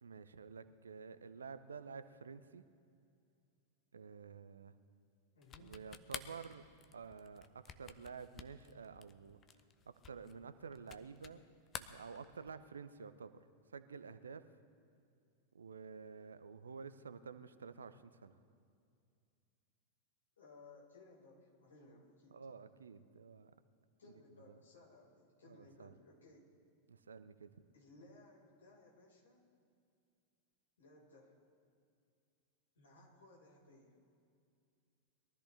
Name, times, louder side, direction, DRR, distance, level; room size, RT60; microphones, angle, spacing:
voice 1, 0.0-2.6 3.9-4.7 5.6-6.6 6.9-9.4 9.9-11.4 11.8-14.4 15.5-18.4 22.3-23.5 24.3-24.6 25.4-25.9 26.9-27.5, right 5 dB, 70° right, 13 dB, 0.6 m, -51 dB
voice 2, 5.3-5.7 20.4-22.4 24.0-26.5 27.7-29.4 30.8-31.4 32.7-34.0, left 2 dB, 70° left, -4 dB, 4.4 m, -61 dB
sound 1, 5.4-11.4 11.7-12.7, left 7 dB, 25° left, 0.7 m, -51 dB
22.0 x 13.5 x 3.3 m, 2.4 s
figure-of-eight pair, 90°, 0 cm